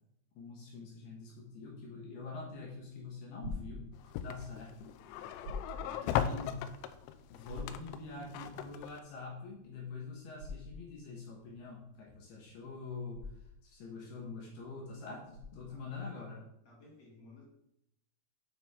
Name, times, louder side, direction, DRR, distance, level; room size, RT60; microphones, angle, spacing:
voice 1, 0.4-3.9 4.2-4.9 6.0-6.6 7.3-13.3 13.6-16.4, left 4 dB, 70° left, -1 dB, 2.6 m, -45 dB
sound 1, 3.4-15.9, left 2 dB, 45° right, 2.9 m, -47 dB
sound 2, 4.0-9.0, left 9 dB, 90° left, 2.7 m, -38 dB
voice 2, 5.7-6.5 15.7-16.3 16.6-17.4, left 2 dB, 45° left, -4 dB, 2.7 m, -57 dB
8.5 x 6.8 x 3.6 m, 0.79 s
omnidirectional pair, 5.9 m